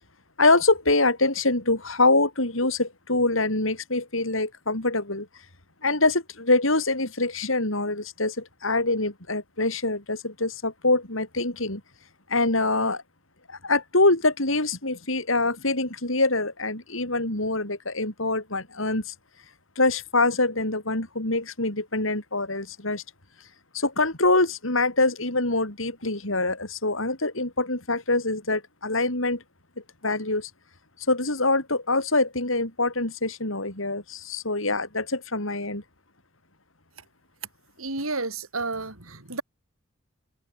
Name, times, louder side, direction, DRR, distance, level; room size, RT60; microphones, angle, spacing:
voice 1, 0.4-5.3 5.8-11.8 12.3-13.0 13.5-19.1 19.8-23.0 23.7-29.4 30.0-30.5 31.1-35.8, left 2 dB, 70° left, 6.0 m, -24 dB
voice 2, 37.8-39.4, right 3 dB, 90° right, 5.9 m, -31 dB
head